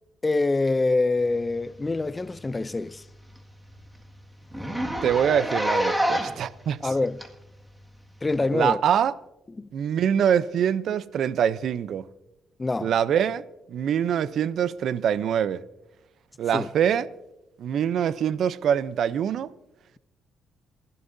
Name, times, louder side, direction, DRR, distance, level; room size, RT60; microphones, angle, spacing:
voice 1, 0.2-3.0 6.8-7.2 8.2-8.8 9.6-9.7 12.6-12.9 16.5-16.7, left 3 dB, 20° left, 0.5 m, -25 dB
Zipper (clothing), 1.9-2.1 2.4-2.5 2.9-3.0 3.3-3.4 3.7-3.8 4.5-6.5 7.2-7.3 8.3-8.4, equal, 5° right, 1.8 m, -27 dB
voice 2, 5.0-6.9 8.5-9.1 9.7-12.1 12.8-13.4 13.7-15.6 16.4-17.1 17.6-19.5, right 8 dB, 65° right, 0.5 m, -24 dB
28.0 x 11.5 x 2.6 m
cardioid pair, 90°, 0 cm